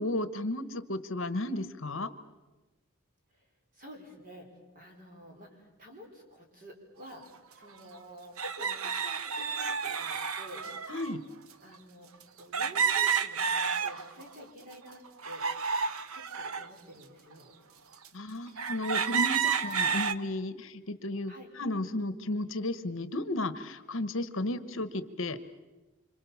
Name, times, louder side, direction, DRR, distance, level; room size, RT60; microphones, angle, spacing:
voice 1, 0.0-2.1 10.9-11.2 18.1-25.4, left 1 dB, 60° left, 13 dB, 1.1 m, -34 dB
voice 2, 3.7-4.5 4.7-10.6 11.6-12.1 12.4-15.6 16.1-17.5 19.3-19.6 21.3-21.5, equal, 40° right, 2 dB, 4.8 m, -50 dB
sound 1, 7.2-7.3 8.4-11.1 12.5-14.3 14.7-16.7 17.3-17.4 18.1-18.2 18.6-20.2, right 6 dB, 75° right, 0.9 m, -30 dB
26.5 x 26.0 x 7.2 m, 1.1 s
head